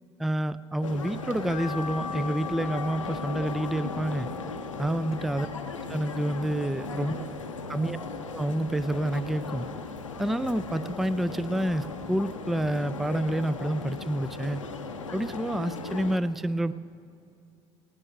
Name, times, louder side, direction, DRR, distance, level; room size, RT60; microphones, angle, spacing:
voice 1, 0.2-4.3 4.8-5.5 5.9-7.2 7.7-8.0 8.3-9.7 10.2-14.6 15.1-16.7, right 1 dB, ahead, 16 dB, 0.3 m, -28 dB
sound 1, 0.8-16.2, left 4 dB, 85° left, 0.7 m, -37 dB
sound 2, 1.5-7.8 8.2-9.3 9.7-11.1 11.5-11.6 12.0-12.1 12.4-12.5, left 6 dB, 55° left, 0.8 m, -42 dB
voice 2, 6.8-8.0, right 6 dB, 85° right, 9 dB, 0.7 m, -45 dB
19.0 x 18.0 x 2.6 m, 2.6 s
figure-of-eight pair, 55°, 16 cm